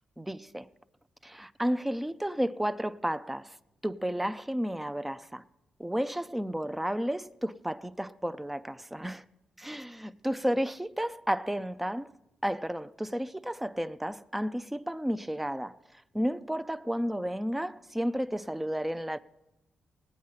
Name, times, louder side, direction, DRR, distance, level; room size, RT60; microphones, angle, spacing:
voice 1, 0.2-0.7 1.2-3.6 3.8-5.4 5.8-9.2 9.6-12.1 12.4-15.8 16.1-19.2, equal, 5° right, 0.4 m, -32 dB
19.0 x 8.5 x 5.7 m
cardioid pair, 110°, 2 cm